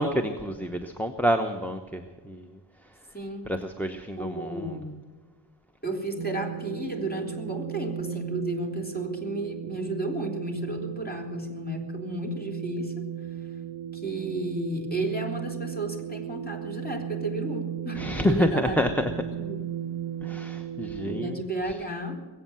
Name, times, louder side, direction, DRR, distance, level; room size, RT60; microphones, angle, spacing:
voice 1, 0.0-2.6 3.5-4.8 17.9-19.3 20.2-21.4, equal, 5° left, 4 dB, 0.9 m, -28 dB
voice 2, 3.1-3.5 4.2-5.0 5.8-13.1 13.9-18.0 18.3-19.0 19.3-19.6 21.0-22.2, right 1 dB, 20° left, 1 dB, 3.4 m, -33 dB
sound 1, 6.2-21.4, right 10 dB, 75° right, 0.6 m, -36 dB
21.5 x 8.5 x 7.6 m, 1.4 s
wide cardioid pair, 60°, 43 cm